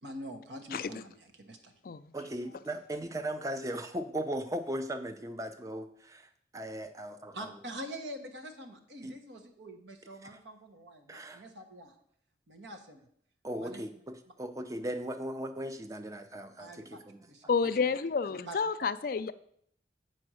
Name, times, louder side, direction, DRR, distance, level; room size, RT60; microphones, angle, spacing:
voice 1, 0.0-1.7 7.3-12.0 12.5-13.1 13.6-13.8 16.6-17.0 17.3-17.4 17.7-18.0 18.2-18.9, right 1 dB, 80° right, 5 dB, 1.2 m, -45 dB
voice 2, 0.7-1.0 1.9-2.0 17.5-19.3, left 5 dB, 50° left, 12 dB, 0.4 m, -30 dB
voice 3, 2.1-7.4 9.0-9.1 10.2-10.4 11.1-11.4 13.4-17.3, right 1 dB, 20° right, 8 dB, 0.5 m, -38 dB
7.7 x 4.4 x 6.2 m, 0.67 s
head